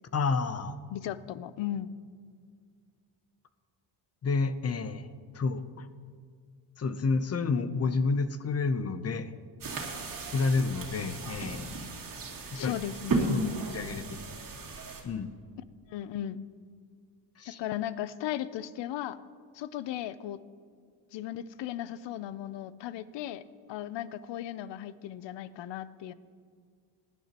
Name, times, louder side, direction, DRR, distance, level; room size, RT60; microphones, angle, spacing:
voice 1, 0.1-0.8 4.2-5.1 5.3-5.9 6.8-9.3 10.3-11.8 12.5-12.7 13.3-14.2 15.0-15.3 17.4-17.6, left 4 dB, 30° left, 12 dB, 0.7 m, -30 dB
voice 2, 0.9-1.9 12.6-13.4 15.9-16.4 17.5-19.2 19.5-20.4 21.1-23.4 23.7-26.1, left 12 dB, 65° left, 16 dB, 0.7 m, -36 dB
sound 1, 9.6-15.0, right 2 dB, 45° right, 2.8 m, -35 dB
19.0 x 11.5 x 3.0 m, 2.1 s
cardioid pair, 100°, 47 cm